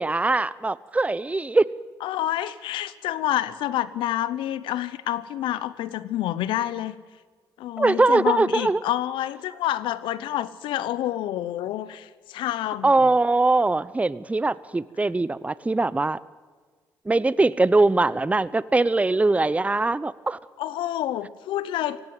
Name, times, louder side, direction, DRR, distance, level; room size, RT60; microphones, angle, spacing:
voice 1, 0.0-1.7 7.8-8.8 12.8-16.2 17.1-20.4, right 2 dB, 15° right, 19 dB, 0.7 m, -21 dB
voice 2, 2.0-7.0 7.6-13.1 20.6-22.0, left 13 dB, 80° left, 17 dB, 0.9 m, -28 dB
17.5 x 16.5 x 9.5 m, 1.5 s
supercardioid pair, 60°, 8 cm